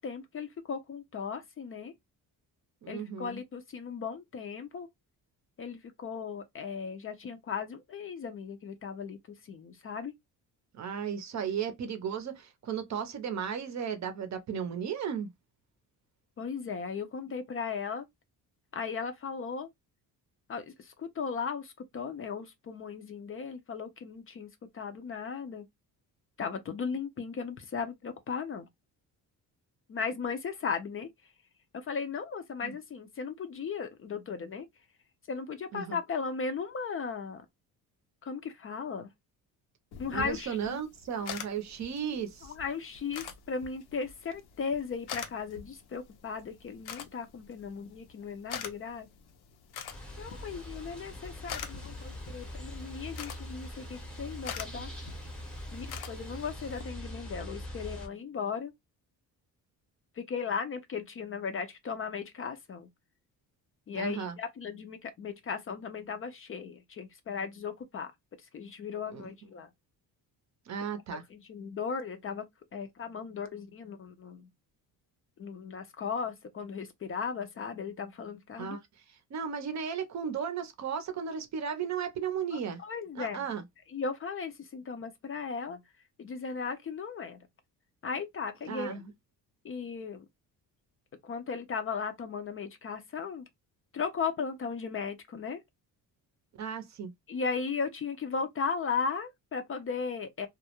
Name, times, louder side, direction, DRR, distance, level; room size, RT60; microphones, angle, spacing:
voice 1, 0.0-1.9 2.9-4.9 5.6-10.1 16.4-18.1 18.7-19.7 20.5-25.7 26.4-28.7 29.9-31.1 31.7-34.7 35.3-37.5 38.2-39.1 40.0-40.8 42.0-49.1 50.2-54.9 55.7-58.7 60.2-62.9 63.9-68.1 68.4-69.7 71.1-72.5 72.7-74.5 75.4-78.8 82.5-83.5 83.9-85.8 86.2-87.5 88.0-89.0 89.6-90.3 91.2-93.5 93.9-95.6 97.3-100.5, left 5 dB, 35° left, 0.4 m, -36 dB
voice 2, 2.8-3.4 10.7-15.3 32.6-32.7 35.7-36.0 40.1-42.5 63.9-64.4 69.1-69.3 70.7-71.2 78.6-78.8 79.1-82.8 83.2-83.6 88.7-89.1 96.6-97.1, right 7 dB, 45° right, 0.6 m, -35 dB
sound 1, 39.9-56.8, left 8 dB, 80° left, 0.6 m, -46 dB
sound 2, 49.9-58.1, left 1 dB, ahead, 0.7 m, -42 dB
2.3 x 2.0 x 2.8 m
cardioid pair, 115°, 38 cm